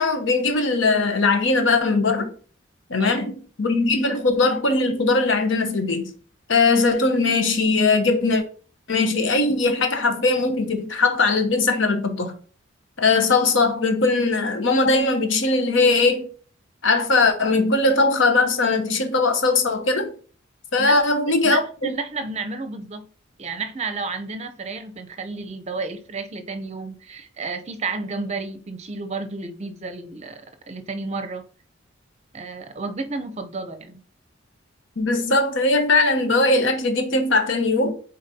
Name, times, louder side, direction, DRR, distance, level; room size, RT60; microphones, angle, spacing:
voice 1, 0.0-2.3 2.9-6.1 6.5-8.4 8.9-12.3 13.0-16.3 16.8-20.1 20.7-22.0 35.0-37.9, left 3 dB, 65° left, 0.9 m, -20 dB
voice 2, 21.4-23.1 23.4-31.4 32.3-34.0, right 3 dB, 35° right, 0.7 m, -31 dB
9.0 x 4.0 x 2.8 m
head